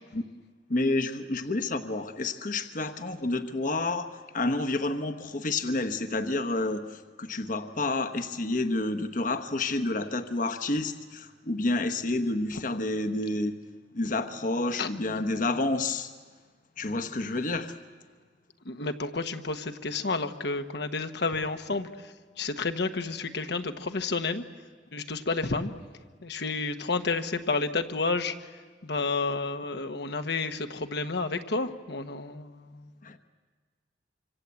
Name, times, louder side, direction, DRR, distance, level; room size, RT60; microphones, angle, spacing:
voice 1, 0.7-13.5 13.9-16.1 16.8-17.7 33.0-33.2, left 2 dB, 45° left, 9 dB, 1.1 m, -29 dB
voice 2, 18.6-21.9 22.4-24.4 24.9-25.7 26.2-28.3 28.8-32.9, left 3 dB, 65° left, 7 dB, 1.2 m, -30 dB
26.0 x 25.5 x 8.2 m, 1.5 s
head